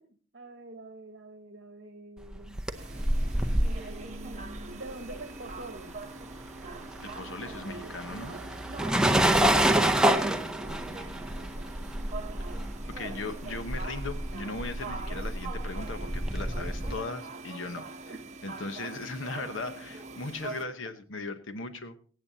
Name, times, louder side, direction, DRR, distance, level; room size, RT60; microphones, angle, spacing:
voice 1, 0.0-2.7 3.6-6.0 7.3-8.6 10.2-12.3 18.1-18.2, right 2 dB, 55° right, 6 dB, 1.3 m, -47 dB
sound 1, 2.3-6.0 6.2-17.0, right 1 dB, 5° right, 0.6 m, -28 dB
sound 2, 2.7-20.6, right 3 dB, 35° right, 1.1 m, -43 dB
voice 2, 7.0-8.3 12.9-17.9 18.4-22.0, left 3 dB, 70° left, 9 dB, 1.0 m, -38 dB
24.0 x 8.6 x 2.8 m, 0.41 s
head